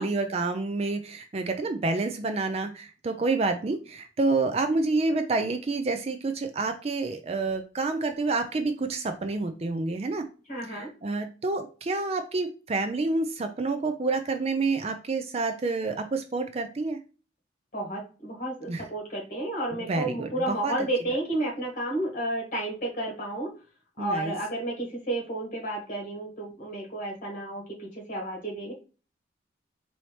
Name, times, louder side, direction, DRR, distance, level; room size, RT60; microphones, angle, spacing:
voice 1, 0.0-10.2 10.6-17.0 18.7-18.8 19.8-20.9 24.0-24.4, right 3 dB, 35° right, 7 dB, 0.4 m, -28 dB
voice 2, 10.5-10.9 17.7-23.5 24.0-28.7, right 1 dB, 45° left, -1 dB, 1.6 m, -32 dB
4.4 x 2.7 x 3.2 m, 0.35 s
head